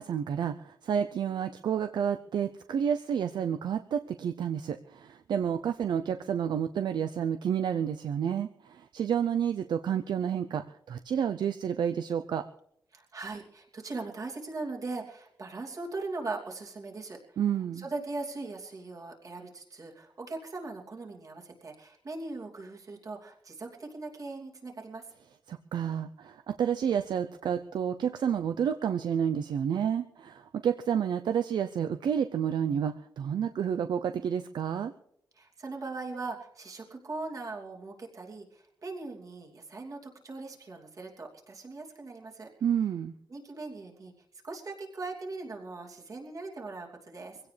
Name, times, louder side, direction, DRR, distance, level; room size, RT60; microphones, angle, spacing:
voice 1, 0.0-12.4 17.4-17.8 25.5-34.9 42.6-43.1, right 8 dB, 70° right, 10 dB, 0.5 m, -30 dB
voice 2, 12.9-17.4 17.7-25.1 35.3-42.5 43.3-44.1 44.4-47.4, right 3 dB, 45° right, -1 dB, 2.8 m, -40 dB
22.5 x 16.5 x 3.3 m, 0.73 s
wide cardioid pair, 140°, 8 cm